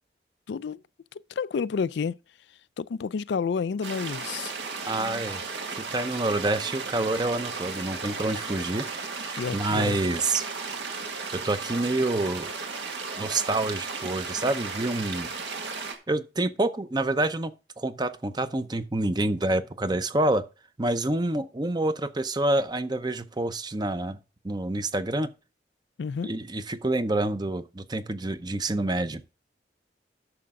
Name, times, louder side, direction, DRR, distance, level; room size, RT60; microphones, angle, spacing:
voice 1, 0.5-0.8 1.4-2.2 2.8-4.5 5.0-5.2 9.4-10.0 26.0-26.3, left 5 dB, 75° left, 0.4 m, -30 dB
sound 1, 3.8-15.9, right 4 dB, 80° right, 1.8 m, -35 dB
voice 2, 4.9-5.4 5.8-8.8 9.1-10.4 11.3-12.5 13.2-15.3 16.1-20.4 20.8-24.2 24.4-25.3 26.2-29.2, right 2 dB, 25° right, 0.7 m, -27 dB
11.5 x 6.8 x 3.6 m
head